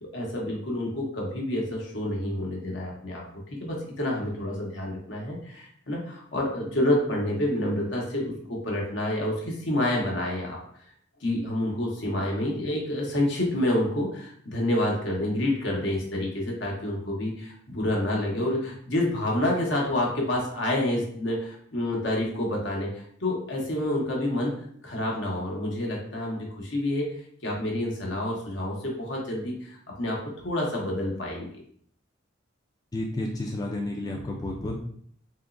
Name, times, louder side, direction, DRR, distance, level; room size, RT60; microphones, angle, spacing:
voice 1, 0.0-3.2 3.5-10.6 11.2-24.5 24.8-27.1 27.4-31.5, left 1 dB, 65° left, -1 dB, 1.0 m, -28 dB
voice 2, 32.9-34.8, left 1 dB, 20° left, -1 dB, 0.3 m, -31 dB
3.6 x 3.0 x 2.5 m, 0.62 s
head